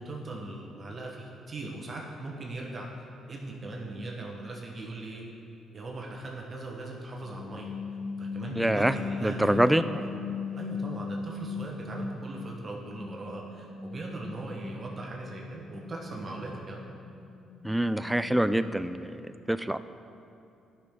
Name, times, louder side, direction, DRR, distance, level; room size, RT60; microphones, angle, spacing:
voice 1, 0.0-2.9 3.3-5.2 5.7-7.7 8.2-10.1 10.6-16.8, right 2 dB, 40° right, -1 dB, 1.0 m, -39 dB
sound 1, 7.2-12.5 12.8-19.1, left 5 dB, 85° left, 0.8 m, -39 dB
voice 2, 8.6-8.9 9.2-9.8 17.6-19.8, right 1 dB, 5° right, 12 dB, 0.3 m, -25 dB
11.0 x 5.8 x 3.6 m, 2.6 s
cardioid pair, 90°, 0 cm